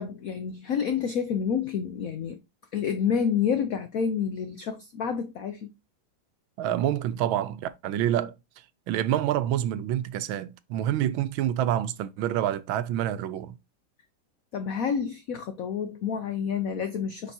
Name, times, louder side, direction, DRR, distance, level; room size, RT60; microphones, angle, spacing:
voice 1, 0.0-2.4 2.7-5.7 14.5-17.3, left 7 dB, 80° left, 0.7 m, -29 dB
voice 2, 6.6-8.3 8.9-13.5, right 11 dB, 85° right, 1.4 m, -27 dB
6.6 x 5.3 x 2.7 m
omnidirectional pair, 2.2 m